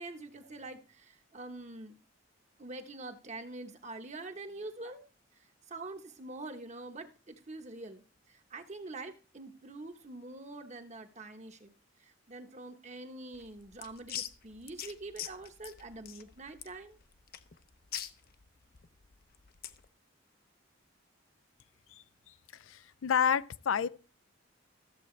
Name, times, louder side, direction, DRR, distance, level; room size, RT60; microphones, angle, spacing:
voice 1, 0.0-2.0 2.6-5.0 5.7-11.7 12.0-17.0, right 2 dB, 35° right, 1.1 m, -45 dB
sound 1, 13.3-19.9, left 10 dB, 50° left, 0.7 m, -44 dB
voice 2, 22.7-23.9, left 7 dB, 85° left, 0.5 m, -29 dB
14.0 x 7.7 x 3.2 m
head